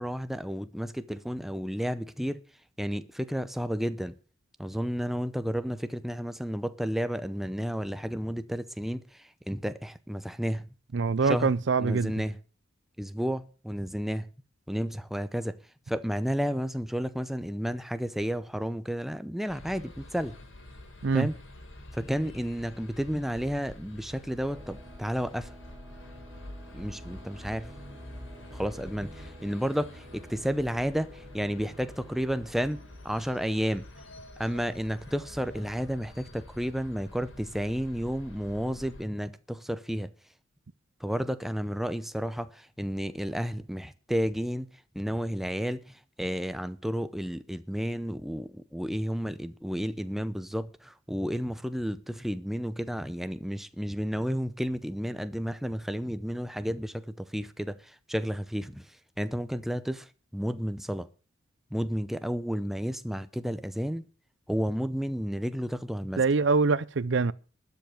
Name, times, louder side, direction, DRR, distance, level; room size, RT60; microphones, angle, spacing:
voice 1, 0.0-2.4 2.8-4.1 4.6-10.7 11.2-11.5 11.8-12.4 13.0-14.3 14.7-15.6 15.9-20.4 21.1-21.4 21.9-25.5 26.7-27.7 28.5-33.9 34.4-40.1 41.0-44.7 44.9-61.1 61.7-64.1 64.5-66.2, equal, ahead, 0.7 m, -32 dB
voice 2, 10.9-12.1 21.0-21.3 66.2-67.3, right 4 dB, 60° right, 0.5 m, -24 dB
sound 1, 19.5-39.0, left 1 dB, 70° left, 3.8 m, -47 dB
sound 2, 24.5-33.8, right 1 dB, 25° right, 1.6 m, -53 dB
12.5 x 7.1 x 9.2 m
head